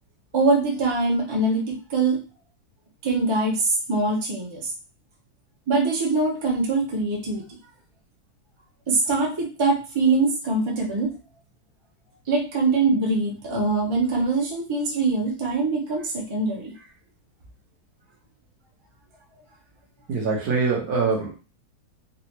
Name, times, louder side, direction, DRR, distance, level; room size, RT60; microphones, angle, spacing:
voice 1, 0.3-2.2 3.0-4.7 5.7-7.4 8.9-11.1 12.3-16.7, right 3 dB, 40° right, -3 dB, 0.4 m, -23 dB
voice 2, 20.1-21.3, right 4 dB, 55° right, -2 dB, 1.4 m, -23 dB
4.0 x 2.5 x 3.0 m, 0.34 s
omnidirectional pair, 2.1 m